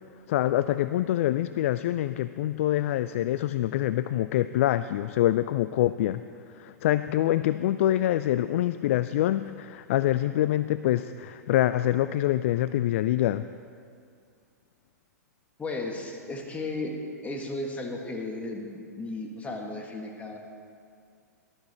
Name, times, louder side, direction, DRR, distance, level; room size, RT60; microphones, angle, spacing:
voice 1, 0.3-6.2 6.6-13.4, left 13 dB, 50° left, 14 dB, 0.4 m, -25 dB
voice 2, 15.6-20.4, left 2 dB, 15° left, 2 dB, 1.8 m, -35 dB
19.5 x 12.0 x 4.3 m, 2.3 s
figure-of-eight pair, 105°, 9 cm